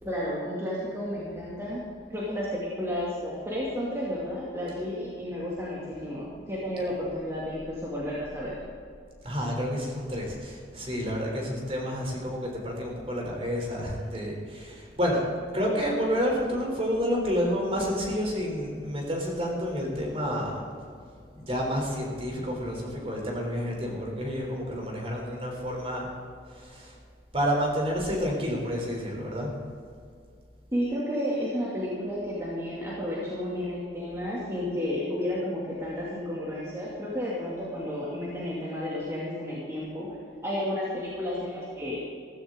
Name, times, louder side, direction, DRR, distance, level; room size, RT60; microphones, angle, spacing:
voice 1, 0.0-1.8 2.1-8.5 30.7-40.1 40.4-42.0, left 1 dB, 15° right, -7 dB, 2.5 m, -32 dB
voice 2, 9.2-15.2 15.5-20.6 21.4-26.1 26.5-27.0 27.3-29.5, equal, 35° right, 0 dB, 3.6 m, -29 dB
15.5 x 15.0 x 3.9 m, 2.2 s
head